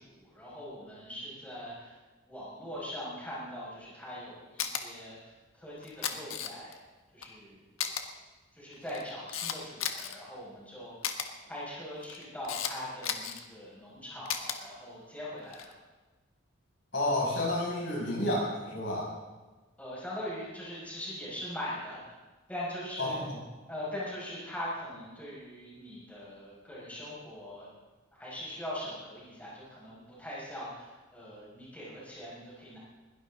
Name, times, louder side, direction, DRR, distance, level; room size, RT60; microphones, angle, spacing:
voice 1, 0.0-1.9 2.3-5.3 5.6-6.7 7.1-7.6 8.5-11.0 11.4-15.7 19.8-22.1 22.5-23.2 23.7-27.7 28.1-32.8, left 1 dB, 5° left, -7 dB, 6.1 m, -41 dB
Camera, 4.6-4.8 5.8-6.8 7.2-7.3 7.8-8.0 8.7-10.2 11.0-11.3 12.0-12.7 13.0-13.4 14.3-14.6 15.4-15.7, left 8 dB, 90° left, 1.5 m, -34 dB
voice 2, 16.9-19.1 23.0-23.2, left 1 dB, 65° left, -4 dB, 6.9 m, -30 dB
21.5 x 17.5 x 3.9 m, 1.2 s
head